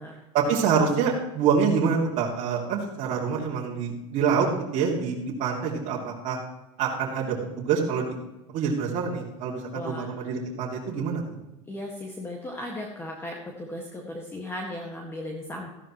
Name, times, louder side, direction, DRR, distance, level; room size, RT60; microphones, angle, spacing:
voice 1, 0.3-4.5 4.7-6.4 6.8-8.1 8.5-11.2, right 6 dB, 50° right, -4 dB, 2.6 m, -26 dB
voice 2, 9.7-10.3 11.7-15.7, left 1 dB, 15° left, 0 dB, 1.8 m, -36 dB
14.5 x 11.0 x 3.1 m, 0.98 s
supercardioid pair, 115°, 17 cm